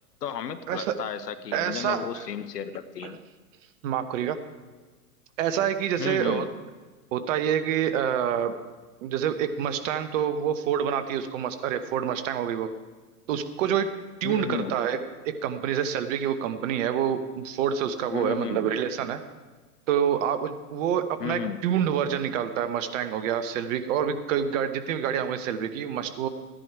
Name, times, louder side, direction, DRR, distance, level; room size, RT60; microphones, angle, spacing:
voice 1, 0.2-3.2 6.0-6.5 14.2-14.7 18.1-18.7 21.2-21.6, left 7 dB, 85° left, 12 dB, 1.1 m, -33 dB
voice 2, 1.5-2.3 3.0-3.2 3.8-4.3 5.4-6.5 7.1-8.5 9.0-12.7 13.3-13.9 14.2-15.0 15.4-19.2 19.9-26.3, right 9 dB, 55° right, 10 dB, 1.2 m, -27 dB
15.5 x 10.5 x 4.7 m, 1.3 s
hypercardioid pair, 120°, 46 cm